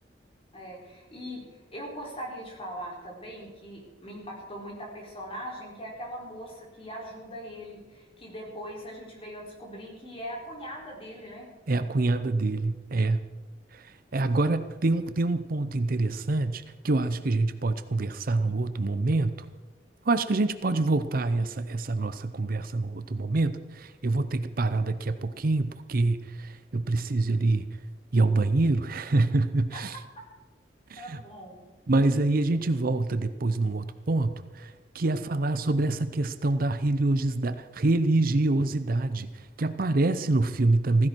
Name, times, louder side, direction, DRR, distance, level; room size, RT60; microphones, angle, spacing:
voice 1, 0.5-11.5 29.7-29.8 31.0-31.7, equal, 35° left, -2 dB, 4.2 m, -41 dB
voice 2, 11.7-13.2 13.7-19.5 20.1-27.6 28.1-30.0 30.9-31.2 31.9-41.1, right 2 dB, 55° right, 12 dB, 0.7 m, -26 dB
15.5 x 15.0 x 4.5 m, 1.2 s
head